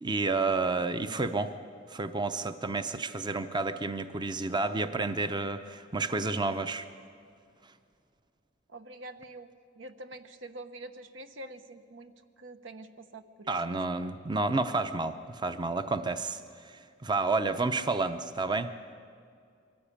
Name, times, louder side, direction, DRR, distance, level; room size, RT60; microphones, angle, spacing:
voice 1, 0.0-1.5 1.9-6.9 13.5-18.7, right 3 dB, 25° right, 10 dB, 0.6 m, -30 dB
voice 2, 8.7-14.1, right 2 dB, 75° right, 9 dB, 1.1 m, -46 dB
23.0 x 15.0 x 8.7 m, 2.3 s
head